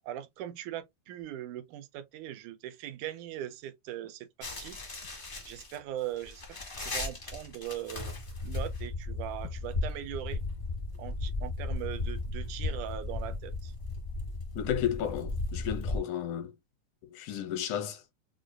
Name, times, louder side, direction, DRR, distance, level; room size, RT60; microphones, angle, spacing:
voice 1, 0.1-4.8 5.5-8.1 8.4-10.4 11.0-13.7, right 12 dB, 85° right, 2.1 m, -40 dB
sound 1, 4.4-16.0, left 3 dB, 55° left, 0.6 m, -36 dB
voice 2, 14.6-16.5 17.1-18.0, left 9 dB, 80° left, 2.3 m, -33 dB
6.1 x 2.3 x 2.4 m
omnidirectional pair, 3.5 m